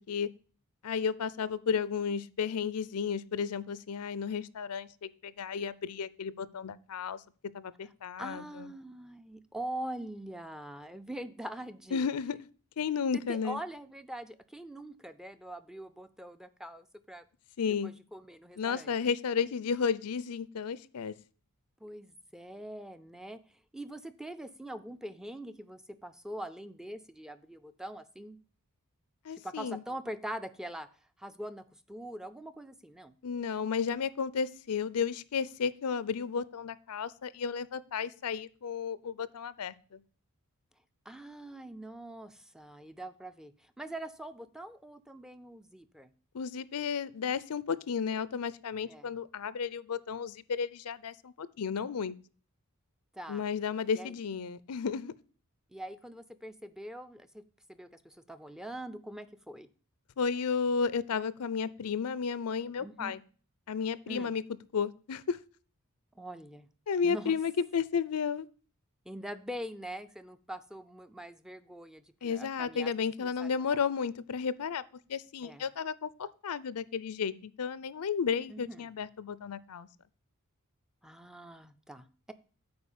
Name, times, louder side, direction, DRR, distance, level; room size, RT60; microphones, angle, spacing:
voice 1, 0.8-7.2 7.5-8.7 11.9-12.4 12.8-13.6 17.6-17.9 18.6-21.1 29.2-29.8 33.2-40.0 46.3-52.2 53.3-55.1 60.2-63.2 63.7-64.4 64.7-65.4 66.9-68.5 72.2-74.8 75.1-79.9, left 6 dB, 80° left, 18 dB, 0.5 m, -33 dB
voice 2, 8.2-12.1 13.1-17.2 17.8-18.9 21.8-28.4 29.3-30.9 31.2-33.1 41.1-46.1 48.8-49.1 53.1-53.4 53.9-54.1 55.7-57.4 57.7-59.7 62.8-63.2 64.1-64.3 66.2-66.7 67.0-67.3 69.1-72.9 73.2-73.8 75.4-75.7 78.5-78.9 81.0-82.3, right 1 dB, 5° right, 11 dB, 0.4 m, -43 dB
8.7 x 4.5 x 7.2 m, 0.40 s
head